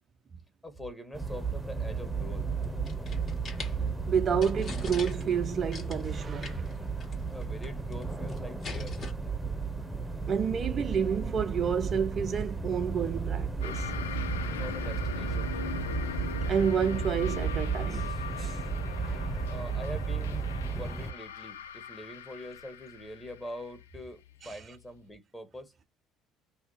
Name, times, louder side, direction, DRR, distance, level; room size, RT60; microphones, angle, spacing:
voice 1, 0.6-2.5 7.3-9.0 14.4-15.6 19.5-25.7, left 1 dB, 15° left, 1.4 m, -44 dB
sound 1, 1.1-21.1, right 4 dB, 5° right, 0.9 m, -34 dB
sound 2, 2.6-3.7 4.1-4.2 4.4-5.4 5.7-6.0 6.4-6.7 7.0-7.1 7.4-8.0 8.3-9.1, left 4 dB, 45° left, 1.6 m, -41 dB
voice 2, 4.1-6.7 10.3-13.9 16.5-18.6 24.4-24.6, right 7 dB, 40° right, 0.4 m, -30 dB
sound 3, 13.6-24.8, left 8 dB, 80° left, 0.3 m, -41 dB
2.7 x 2.7 x 4.0 m
figure-of-eight pair, 60°, 0 cm